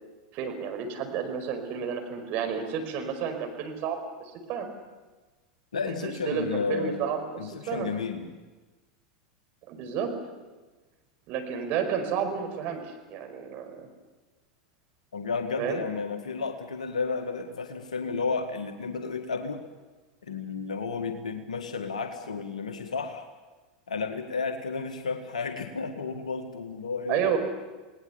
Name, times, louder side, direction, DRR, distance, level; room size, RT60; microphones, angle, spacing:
voice 1, 0.3-4.0 4.5-4.7 5.8-8.0 9.7-10.1 11.3-13.9 15.6-15.8 27.1-27.4, right 7 dB, 50° right, 5 dB, 5.1 m, -31 dB
voice 2, 5.7-7.0 7.4-8.3 15.1-19.7 20.2-23.3 23.9-27.2, left 4 dB, 80° left, 5 dB, 1.9 m, -32 dB
28.5 x 19.0 x 7.1 m, 1.2 s
hypercardioid pair, 90°, 4 cm